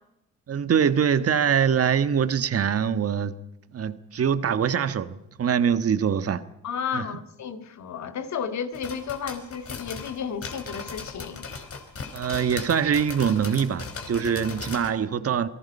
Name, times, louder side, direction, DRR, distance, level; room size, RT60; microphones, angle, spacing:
voice 1, 0.5-3.4 3.7-6.4 6.9-7.1 12.1-15.5, right 7 dB, 50° right, 1.5 m, -23 dB
voice 2, 6.6-11.5, left 7 dB, 65° left, 2.3 m, -33 dB
sound 1, 8.7-14.9, left 5 dB, 50° left, 4.1 m, -38 dB
28.5 x 19.5 x 5.5 m
cardioid pair, 90°, 30 cm